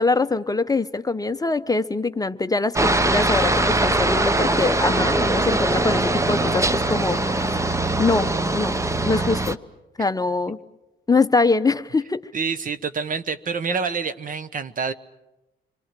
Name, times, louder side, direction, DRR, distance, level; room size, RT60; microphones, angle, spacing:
voice 1, 0.0-7.6 8.0-8.3 8.5-8.8 9.0-9.6 10.0-10.6 11.1-12.3, left 3 dB, 20° left, 10 dB, 0.8 m, -23 dB
Aircraft, 2.8-9.6, right 2 dB, 15° right, 0.9 m, -22 dB
voice 2, 12.3-14.9, right 5 dB, 45° right, 13 dB, 1.1 m, -27 dB
28.0 x 23.0 x 7.6 m, 0.98 s
cardioid pair, 90°, 20 cm